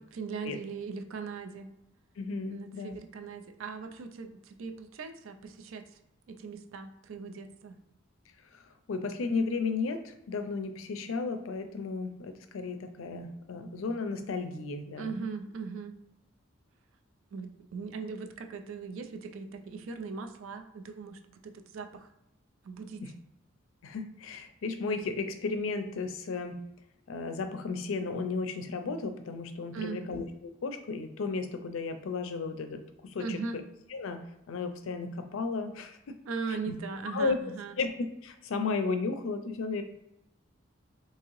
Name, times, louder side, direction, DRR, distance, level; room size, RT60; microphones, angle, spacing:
voice 1, 0.0-1.7 2.5-6.0 6.3-7.8 15.0-15.9 17.3-22.1 22.6-23.0 29.7-30.0 33.2-33.6 36.3-37.8, right 4 dB, 75° right, 6 dB, 0.4 m, -39 dB
voice 2, 2.2-3.0 8.5-8.6 8.9-15.1 23.0-23.1 23.8-26.6 27.1-33.6 33.9-36.2 36.5-36.7 37.1-37.4 37.8-37.9 38.2-39.8, left 4 dB, 75° left, 8 dB, 0.4 m, -34 dB
3.5 x 2.8 x 3.1 m, 0.84 s
head